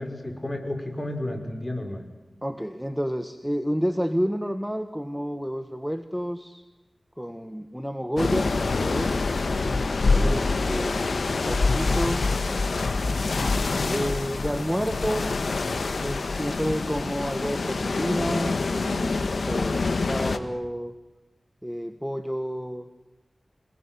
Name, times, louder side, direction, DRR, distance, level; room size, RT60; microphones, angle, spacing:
voice 1, 0.0-2.1 9.6-9.8 10.1-10.3, left 1 dB, 25° left, 5 dB, 5.9 m, -32 dB
voice 2, 2.4-6.6 7.2-9.2 10.1-10.4 10.7-11.1 11.4-12.3 13.9-15.3 16.0-20.9 21.6-23.1, equal, 5° right, 9 dB, 1.6 m, -30 dB
sound 1, 8.2-20.4, left 3 dB, 75° left, 1.8 m, -26 dB
28.0 x 20.0 x 9.3 m, 1.1 s
wide cardioid pair, 60°, 0 cm